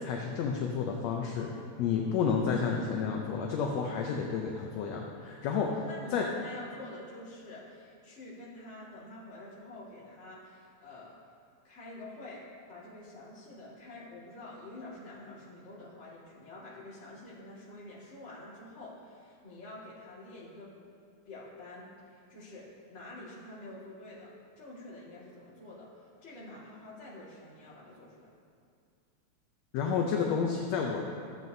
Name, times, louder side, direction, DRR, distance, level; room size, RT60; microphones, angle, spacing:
voice 1, 0.0-1.5 1.8-5.8 6.1-6.2 29.7-31.0, left 6 dB, 75° left, 0 dB, 1.7 m, -30 dB
voice 2, 5.9-11.2 11.6-20.7 21.2-28.3, left 2 dB, 30° left, -7 dB, 1.7 m, -48 dB
14.0 x 7.6 x 2.7 m, 2.3 s
omnidirectional pair, 3.4 m